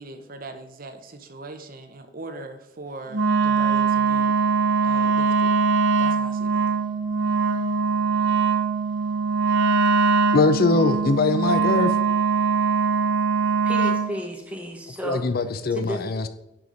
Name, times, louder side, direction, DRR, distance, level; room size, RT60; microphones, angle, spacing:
voice 1, 0.0-4.4 4.8-5.6 6.0-6.6, right 2 dB, 50° right, 0.9 m, -40 dB
Wind instrument woodwind instrument, 3.1-14.1, right 5 dB, 80° right, 0.8 m, -22 dB
voice 2, 10.3-11.9 15.0-16.3, left 3 dB, 50° left, 0.6 m, -21 dB
voice 3, 13.4-15.2 15.7-16.0, equal, 5° right, 1.3 m, -33 dB
10.5 x 4.9 x 3.9 m
head